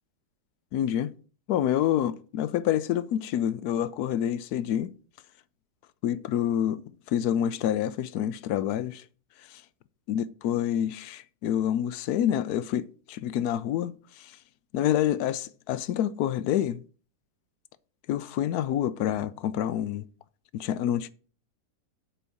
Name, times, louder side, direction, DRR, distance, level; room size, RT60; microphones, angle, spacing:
voice 1, 0.7-1.1 1.5-4.9 6.0-9.0 10.1-14.3 14.7-16.8 18.1-20.0 20.5-21.1, left 10 dB, 75° left, 1.1 m, -27 dB
8.6 x 4.5 x 7.0 m
omnidirectional pair, 1.8 m